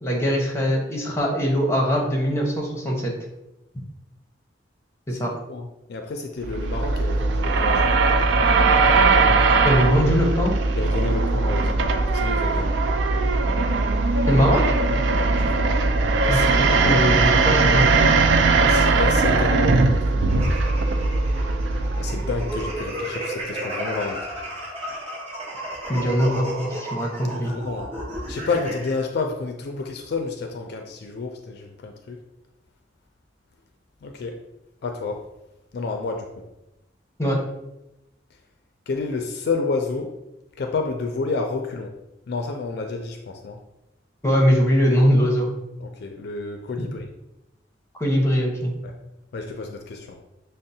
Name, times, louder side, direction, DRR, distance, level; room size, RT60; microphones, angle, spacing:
voice 1, 0.0-3.1 5.1-5.3 9.6-10.5 14.3-14.6 16.3-18.0 25.9-27.5 37.2-37.4 44.2-45.5 46.8-46.9 47.9-48.7, equal, 15° left, -1 dB, 0.8 m, -21 dB
voice 2, 5.1-8.0 10.8-12.8 15.1-15.8 16.2-16.5 16.8-17.0 18.6-20.5 22.0-24.3 27.3-27.9 28.3-32.2 34.0-34.4 34.8-35.2 35.7-36.3 38.9-40.1 40.6-41.9 42.3-43.6 45.8-47.1 48.8-48.9 49.3-50.2, left 3 dB, 60° left, 4 dB, 0.4 m, -30 dB
sound 1, 6.4-22.8, right 3 dB, 70° right, 0.3 m, -20 dB
sound 2, 20.3-28.9, right 1 dB, 35° right, 1.1 m, -33 dB
6.0 x 2.0 x 2.7 m, 0.92 s
head